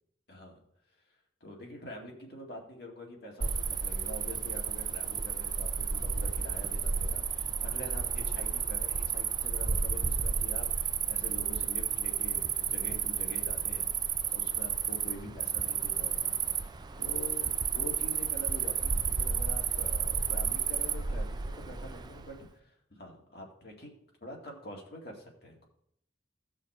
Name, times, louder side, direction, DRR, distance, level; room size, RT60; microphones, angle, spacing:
voice 1, 0.3-0.6 1.4-16.7 17.0-25.6, left 1 dB, 55° left, 0 dB, 2.0 m, -46 dB
Cricket, 3.4-22.3, right 6 dB, 20° right, 0.4 m, -32 dB
15.5 x 5.7 x 4.3 m, 0.73 s
head